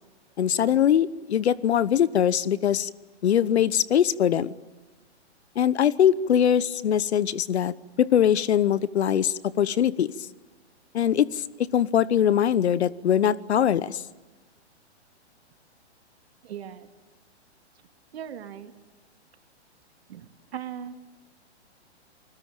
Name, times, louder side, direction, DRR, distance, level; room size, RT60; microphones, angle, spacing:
voice 1, 0.4-2.9 3.2-4.5 5.6-10.1 10.9-11.4 11.7-14.0, left 9 dB, 70° left, 19 dB, 1.1 m, -22 dB
voice 2, 16.4-16.9 18.1-18.7 20.1-20.3 20.5-20.9, right 9 dB, 60° right, 7 dB, 2.7 m, -38 dB
29.0 x 21.0 x 9.0 m, 1.2 s
hypercardioid pair, 135°, 34 cm